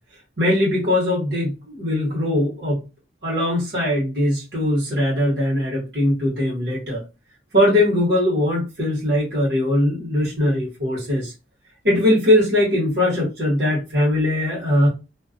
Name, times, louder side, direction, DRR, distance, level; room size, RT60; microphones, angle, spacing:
voice 1, 0.4-2.8 3.2-7.0 7.5-11.3 11.8-14.9, left 1 dB, 65° right, -5 dB, 1.1 m, -20 dB
2.3 x 2.2 x 2.4 m, 0.28 s
head